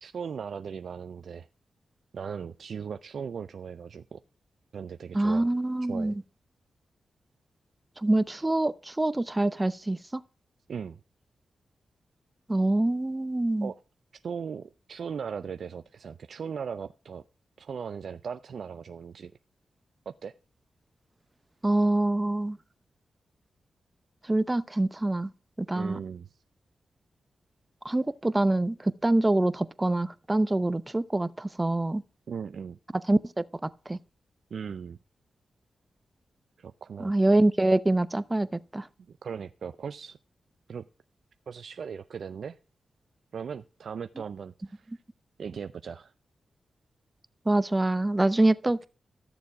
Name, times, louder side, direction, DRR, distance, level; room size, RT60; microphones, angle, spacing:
voice 1, 0.0-1.5 2.1-4.2 4.7-5.5 5.9-6.1 10.7-11.0 13.6-13.8 14.2-17.2 17.6-19.3 20.1-20.3 25.7-26.4 32.3-32.8 34.5-35.0 36.6-37.1 39.1-40.2 40.7-40.9 41.5-42.6 43.3-44.9 45.4-46.1, right 6 dB, 70° right, 0.5 m, -38 dB
voice 2, 5.1-6.2 8.0-10.2 12.5-13.7 21.6-22.6 24.3-25.3 25.6-26.0 27.8-32.0 33.1-34.0 37.0-38.5 38.7-38.9 47.5-48.9, right 2 dB, 20° right, 0.7 m, -25 dB
13.5 x 7.1 x 4.8 m
cardioid pair, 50°, 0 cm